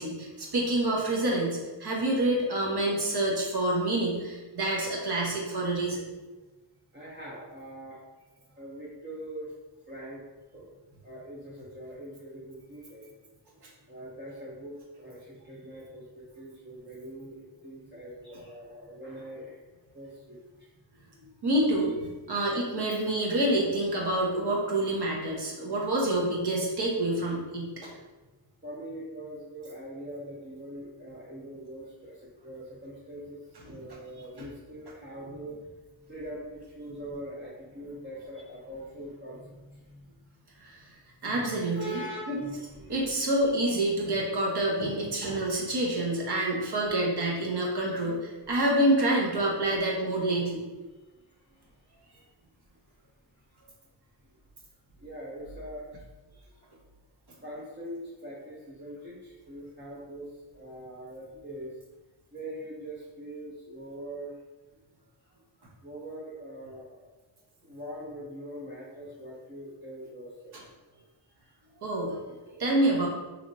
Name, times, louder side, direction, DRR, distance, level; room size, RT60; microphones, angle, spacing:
voice 1, 0.0-6.0 21.4-27.9 40.6-40.7 41.2-42.0 42.3-42.4 42.9-50.6 71.8-73.1, right 1 dB, 55° right, -2 dB, 1.0 m, -27 dB
voice 2, 6.9-8.0 8.6-9.5 9.9-10.2 10.5-10.7 11.0-13.1 13.9-19.6 19.9-20.7 22.3-22.4 28.6-35.7 36.1-40.2 41.7-43.1 48.4-48.6 51.5-51.8 55.0-55.9 57.4-61.7 62.3-64.4 65.2-65.3 65.8-67.1 67.6-70.6, right 1 dB, 25° right, -6 dB, 0.6 m, -42 dB
3.2 x 3.0 x 2.6 m, 1.2 s
wide cardioid pair, 90°, 46 cm